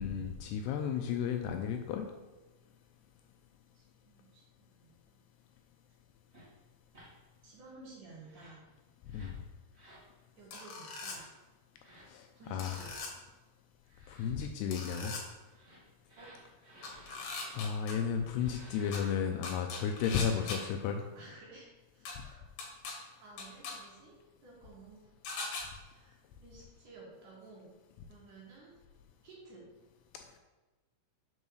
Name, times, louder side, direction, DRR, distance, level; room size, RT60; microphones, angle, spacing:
voice 1, 0.0-2.1 9.1-9.3 12.1-12.8 14.1-15.2 17.5-21.0, left 7 dB, 80° left, 5 dB, 2.5 m, -33 dB
voice 2, 3.7-5.2 7.4-8.7 10.4-11.3 12.3-13.1 16.2-16.3 21.1-21.7 21.9-22.4 23.2-24.2 24.4-27.7 28.1-28.7 29.2-29.6, right 3 dB, 55° right, -5 dB, 2.7 m, -54 dB
sound 1, 6.3-6.5 6.9-7.1 8.2-8.6 9.1-9.4 9.7-10.1 10.9-11.3 11.8-12.1 12.6-12.9 13.8-14.3 15.4-17.6 18.3-19.1 20.0-20.8, right 1 dB, 35° right, 0.9 m, -56 dB
sound 2, 10.5-11.2 12.6-13.1 14.7-15.2 16.8-17.9 18.9-19.0 19.4-20.6 22.1-22.2 22.6-22.9 23.4-23.7 25.2-25.6, left 4 dB, 65° left, 2.7 m, -40 dB
6.2 x 5.5 x 6.3 m, 1.2 s
omnidirectional pair, 5.1 m